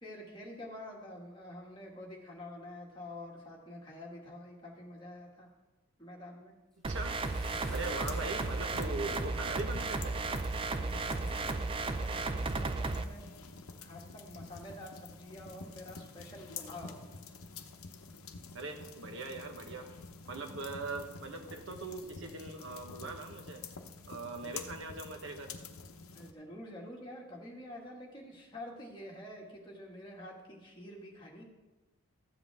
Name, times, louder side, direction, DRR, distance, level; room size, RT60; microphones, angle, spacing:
voice 1, 0.0-5.5 6.0-6.5 10.7-13.3 13.8-17.0 26.1-31.4, left 1 dB, 20° left, -2 dB, 1.9 m, -48 dB
sound 1, 6.8-13.0, right 3 dB, 25° right, 0.4 m, -34 dB
Bathtub (filling or washing) / Splash splatter, 6.9-9.5 10.4-10.5 11.5-11.6, left 1 dB, ahead, 1.3 m, -54 dB
voice 2, 6.9-7.2 7.7-10.2 18.5-19.9 20.3-23.6 24.1-25.5, right 3 dB, 55° right, 4 dB, 1.1 m, -41 dB
sound 2, 7.2-26.3, left 4 dB, 75° left, 0.8 m, -48 dB
14.0 x 7.7 x 3.5 m, 1.1 s
head